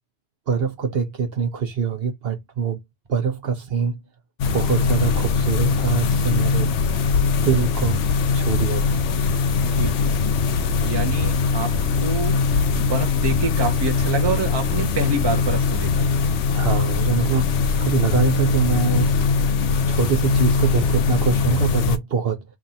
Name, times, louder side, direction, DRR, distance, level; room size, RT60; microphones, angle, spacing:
voice 1, 0.5-2.8 3.1-4.0 4.5-6.7 7.4-8.0 8.3-9.0 16.5-19.2 19.9-22.4, right 6 dB, 55° right, 0.9 m, -24 dB
sound 1, 4.4-22.0, left 5 dB, 70° left, 0.9 m, -21 dB
voice 2, 9.6-10.2 10.8-12.4 12.7-16.3, right 4 dB, 25° right, 0.7 m, -27 dB
3.4 x 2.5 x 4.0 m
omnidirectional pair, 1.3 m